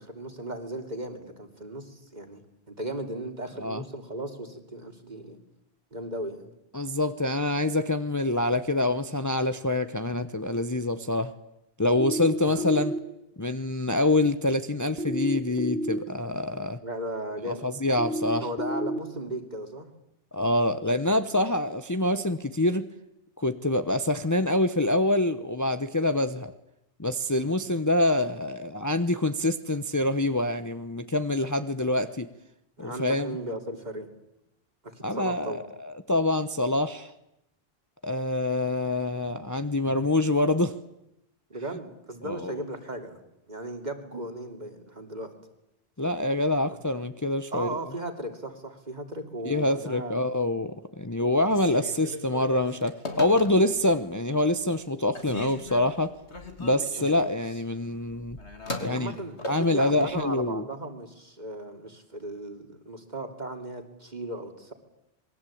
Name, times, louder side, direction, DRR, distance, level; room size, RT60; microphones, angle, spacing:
voice 1, 0.0-2.4 2.7-5.4 5.9-6.5 11.9-12.1 12.4-12.7 16.8-17.7 18.4-19.9 27.3-27.5 32.8-34.1 35.0-35.6 41.5-43.2 43.5-45.3 46.7-46.8 47.5-50.2 57.0-57.1 58.8-64.7, right 1 dB, 40° right, 5 dB, 3.1 m, -36 dB
voice 2, 6.7-11.3 11.8-12.9 13.4-16.8 17.5-18.5 20.3-22.9 23.4-26.5 27.0-32.3 32.8-33.3 35.0-37.1 38.0-40.7 42.2-42.5 46.0-47.7 49.5-56.1 56.6-58.4 58.8-59.1 59.5-60.6, left 1 dB, 20° left, 10 dB, 0.9 m, -26 dB
sound 1, 12.0-13.0 15.0-16.0 18.0-19.0, equal, 65° right, 2.2 m, -30 dB
Telephone, 51.4-53.9 54.4-54.9 55.1-60.2, left 2 dB, 85° left, 3.3 m, -39 dB
27.0 x 22.5 x 8.7 m, 0.86 s
omnidirectional pair, 1.1 m